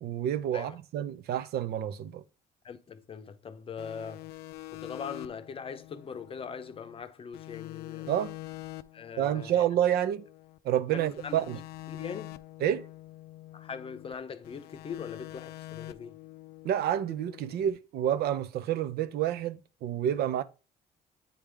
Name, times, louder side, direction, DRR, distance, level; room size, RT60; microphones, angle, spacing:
voice 1, 0.0-2.2 8.1-8.3 9.2-10.2 10.6-11.6 12.6-12.9 16.6-20.4, right 10 dB, 70° right, 0.5 m, -29 dB
voice 2, 2.6-4.3 4.7-8.1 8.9-9.5 10.9-11.4 11.9-12.3 13.5-16.1, left 6 dB, 35° left, 0.7 m, -41 dB
sound 1, 3.8-7.0 7.3-10.6 11.0-14.2 14.4-17.7, left 17 dB, 75° left, 0.4 m, -46 dB
8.6 x 3.5 x 3.3 m
cardioid pair, 110°, 17 cm